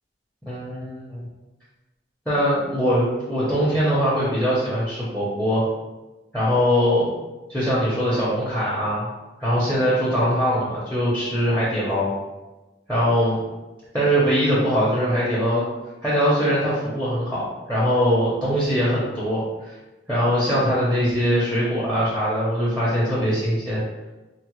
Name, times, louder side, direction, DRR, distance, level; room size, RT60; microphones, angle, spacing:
voice 1, 0.5-1.3 2.3-5.6 6.3-7.1 7.5-9.1 9.4-12.1 12.9-13.4 13.9-15.6 16.0-19.7 20.1-23.8, equal, 5° left, -8 dB, 0.6 m, -22 dB
3.6 x 2.0 x 2.9 m, 1.1 s
head